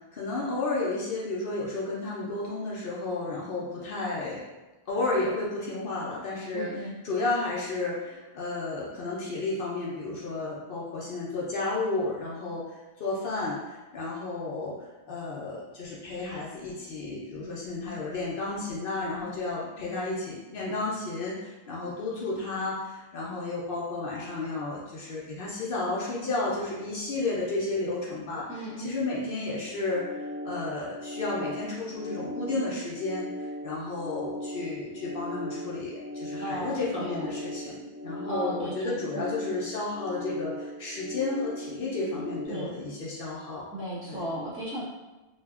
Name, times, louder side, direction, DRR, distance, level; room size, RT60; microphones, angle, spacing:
voice 1, 0.1-4.4 4.9-12.6 13.0-14.8 15.1-28.5 28.8-33.2 33.6-43.7 44.1-44.2, left 3 dB, 65° left, -5 dB, 0.8 m, -32 dB
voice 2, 6.5-6.9 28.5-28.9 36.4-37.3 38.2-39.3 42.5-42.7 43.7-44.8, right 1 dB, 15° right, -10 dB, 0.8 m, -35 dB
sound 1, 29.7-42.5, left 1 dB, 45° right, 0.8 m, -38 dB
2.8 x 2.4 x 2.3 m, 1.1 s
omnidirectional pair, 1.1 m